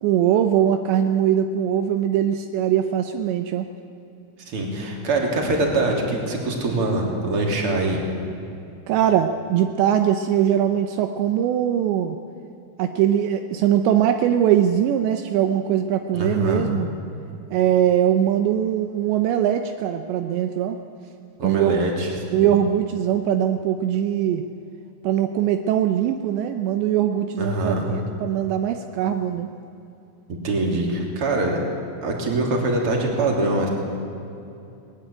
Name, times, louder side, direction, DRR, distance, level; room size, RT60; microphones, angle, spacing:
voice 1, 0.0-3.7 8.9-12.2 12.8-16.9 17.5-20.8 21.4-21.8 22.3-24.4 25.0-29.5, right 10 dB, 80° right, 7 dB, 3.0 m, -21 dB
voice 2, 4.5-8.0 16.1-16.6 21.4-22.5 27.4-27.8 30.4-31.6 32.0-33.7, right 2 dB, 35° right, 1 dB, 3.6 m, -23 dB
20.0 x 20.0 x 9.0 m, 2.7 s
omnidirectional pair, 5.2 m